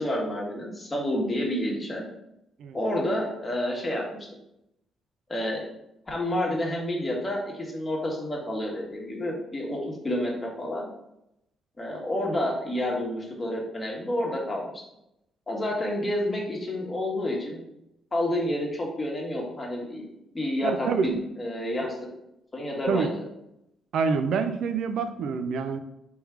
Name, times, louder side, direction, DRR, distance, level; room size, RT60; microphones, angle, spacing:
voice 1, 0.0-2.1 2.7-4.0 5.3-5.7 6.1-9.8 10.0-10.9 11.8-14.6 15.5-17.6 18.1-20.0 20.3-21.1 21.4-21.9 22.5-23.1, left 1 dB, 25° left, -2 dB, 1.5 m, -29 dB
voice 2, 20.6-21.1 22.9-23.1 23.9-25.8, right 5 dB, 75° right, 9 dB, 0.4 m, -26 dB
3.5 x 3.2 x 4.8 m, 0.82 s
cardioid pair, 90°, 0 cm